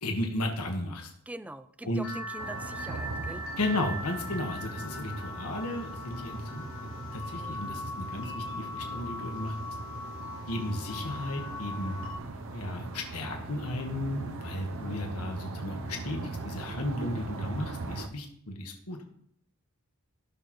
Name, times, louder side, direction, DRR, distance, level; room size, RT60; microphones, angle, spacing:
voice 1, 0.0-1.1 1.8-2.1 3.6-6.7 7.1-9.7 10.5-12.0 12.5-19.0, left 1 dB, 80° left, 3 dB, 1.5 m, -34 dB
voice 2, 1.3-3.4, right 1 dB, 5° right, 12 dB, 0.3 m, -43 dB
sound 1, 2.0-12.2, left 1 dB, 60° left, 1.9 m, -40 dB
sound 2, 2.4-18.1, right 3 dB, 60° right, 0.7 m, -40 dB
sound 3, 4.7-15.0, right 1 dB, 30° right, 3.0 m, -52 dB
16.0 x 6.4 x 3.1 m, 0.68 s
head